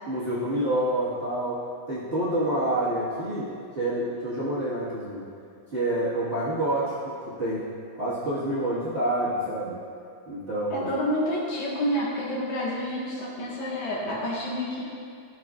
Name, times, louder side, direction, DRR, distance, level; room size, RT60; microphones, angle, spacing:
voice 1, 0.1-1.6 1.9-3.5 3.7-5.3 5.7-7.6 7.9-9.8 10.3-10.9, right 1 dB, 30° right, -11 dB, 1.2 m, -28 dB
voice 2, 10.7-14.8, equal, 75° left, -6 dB, 2.9 m, -29 dB
14.0 x 6.7 x 2.5 m, 2.4 s
omnidirectional pair, 3.4 m